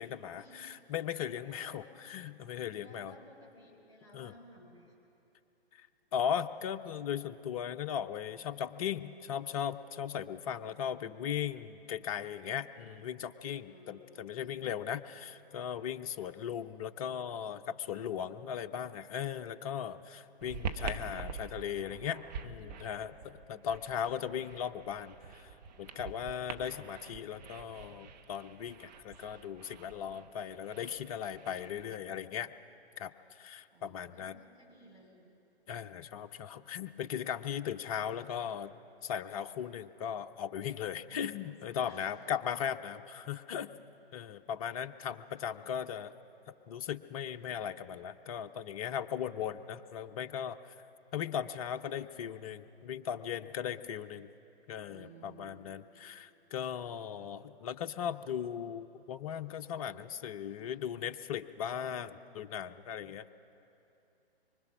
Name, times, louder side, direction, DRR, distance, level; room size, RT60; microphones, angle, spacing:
voice 1, 0.0-3.1 4.1-4.3 5.8-5.9 6.1-25.5 25.8-32.5 33.0-34.4 35.7-38.7 39.0-43.7 44.1-46.1 46.7-50.7 51.1-54.3 54.7-62.1 62.3-63.2, left 8 dB, 35° left, 8 dB, 0.7 m, -38 dB
voice 2, 1.4-2.0 2.8-5.0 13.7-14.9 16.1-16.3 23.5-24.4 33.7-35.3 41.1-41.3 41.8-42.1 45.3-45.7 54.9-56.0 61.7-62.0, right 1 dB, 10° right, -7 dB, 5.0 m, -58 dB
sound 1, 20.4-32.0, right 6 dB, 40° right, 1.2 m, -45 dB
24.5 x 24.0 x 6.2 m, 2.8 s
figure-of-eight pair, 130°, 32 cm